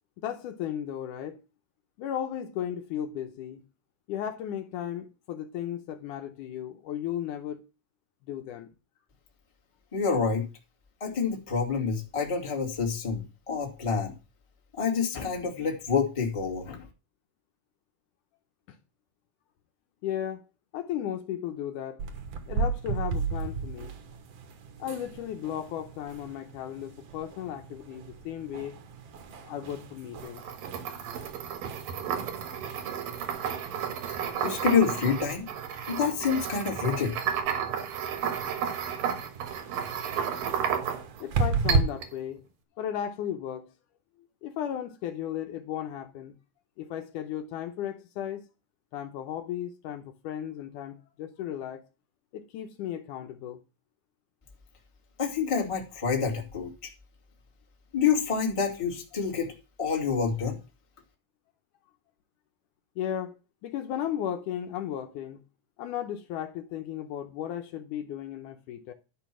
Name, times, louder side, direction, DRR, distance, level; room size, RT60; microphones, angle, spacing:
voice 1, 0.2-1.4 2.0-3.6 4.1-7.6 8.2-8.7 18.7-18.8 20.0-20.4 20.7-22.0 22.5-23.9 24.8-28.8 29.4-30.4 41.2-42.4 42.8-43.7 44.4-46.4 46.8-48.5 48.9-51.8 52.3-53.6 63.0-65.4 65.8-68.9, left 10 dB, 75° left, 2.2 m, -35 dB
voice 2, 9.9-10.5 11.0-14.1 14.7-16.8 34.1-35.5 35.9-37.2 55.2-56.7 57.9-59.5 59.8-60.6, left 6 dB, 15° left, 1.1 m, -27 dB
sound 1, 22.0-41.8, right 4 dB, 60° right, 1.6 m, -36 dB
sound 2, 30.2-41.2 41.7-42.1, right 8 dB, 80° right, 3.0 m, -32 dB
11.5 x 5.2 x 6.0 m
omnidirectional pair, 4.0 m